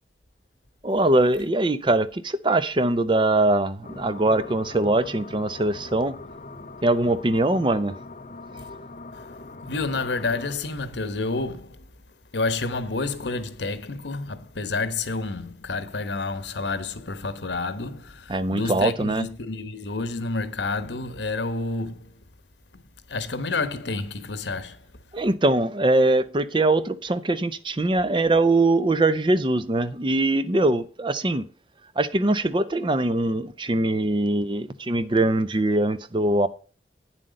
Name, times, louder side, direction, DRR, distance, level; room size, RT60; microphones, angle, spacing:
voice 1, 0.8-6.1 6.8-7.9 18.3-19.3 25.1-31.5 32.0-36.5, right 2 dB, 30° right, 0.5 m, -22 dB
sound 1, 3.8-10.6, left 3 dB, 45° left, 0.7 m, -41 dB
voice 2, 9.6-11.9 12.3-22.1 22.7-22.8 23.1-24.8, left 3 dB, 85° left, 1.1 m, -29 dB
9.1 x 7.6 x 5.1 m
head